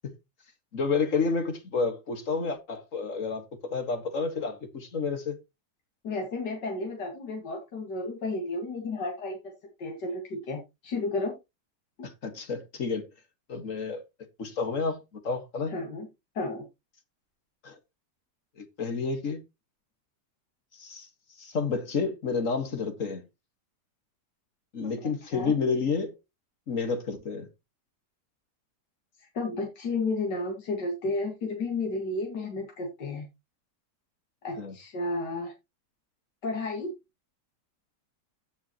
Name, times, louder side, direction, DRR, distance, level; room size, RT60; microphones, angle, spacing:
voice 1, 0.7-5.4 12.0-13.1 13.5-14.0 14.4-15.7 17.6-17.7 18.6-19.4 20.8-21.1 21.4-23.2 24.7-26.1 26.7-27.5 34.6-34.7, left 4 dB, 50° left, 2.0 m, -30 dB
voice 2, 6.0-9.4 9.8-11.4 15.7-16.1 16.3-16.7 25.0-25.5 29.2-33.3 34.4-35.5 36.4-36.9, left 2 dB, 75° left, 2.6 m, -32 dB
16.0 x 5.5 x 3.0 m
omnidirectional pair, 1.9 m